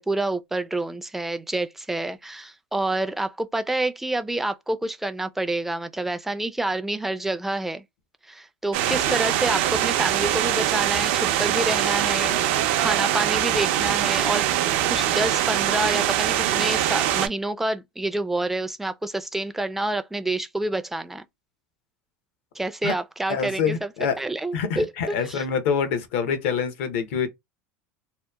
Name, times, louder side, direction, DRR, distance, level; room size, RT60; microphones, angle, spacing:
voice 1, 0.0-7.8 8.3-12.4 12.8-14.5 14.9-21.2 22.6-23.9 24.2-25.4, right 2 dB, 5° right, 0.3 m, -28 dB
sound 1, 8.7-17.3, right 12 dB, 70° right, 0.4 m, -23 dB
voice 2, 23.3-24.2 24.5-27.3, left 6 dB, 75° left, 0.7 m, -26 dB
2.8 x 2.1 x 2.2 m
supercardioid pair, 105°, 7 cm